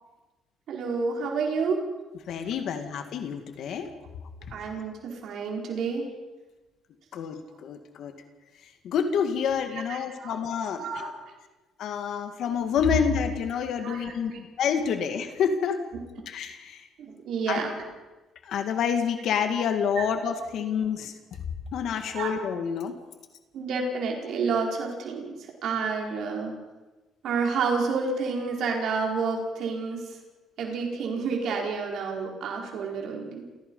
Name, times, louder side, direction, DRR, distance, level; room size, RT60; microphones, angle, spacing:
voice 1, 0.7-1.8 4.5-6.1 9.7-10.4 10.8-11.1 12.8-13.0 13.7-14.4 17.0-17.7 20.0-20.1 22.1-22.3 23.5-26.6 27.2-30.2 30.6-33.5, right 4 dB, 65° right, 0 dB, 4.8 m, -30 dB
voice 2, 2.3-3.9 7.1-8.1 8.8-10.8 11.8-14.3 14.6-15.8 16.3-16.9 17.5-17.6 18.5-21.1 21.7-23.0, left 7 dB, 65° left, 7 dB, 2.1 m, -28 dB
28.5 x 17.0 x 5.6 m, 1.1 s
cardioid pair, 115°, 0 cm